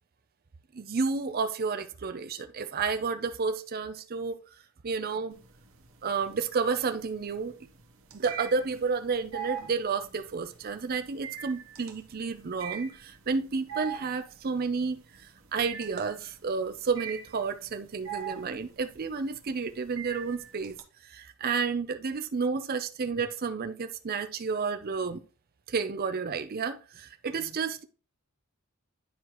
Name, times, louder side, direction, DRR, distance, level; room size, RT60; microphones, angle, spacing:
voice 1, 0.7-4.4 4.8-5.4 6.0-7.5 8.1-20.8 21.0-25.2 25.7-27.8, right 5 dB, 45° right, 0.5 m, -31 dB
sound 1, 5.3-6.0 6.3-20.8, right 9 dB, 65° right, 1.2 m, -41 dB
10.0 x 4.7 x 3.0 m
head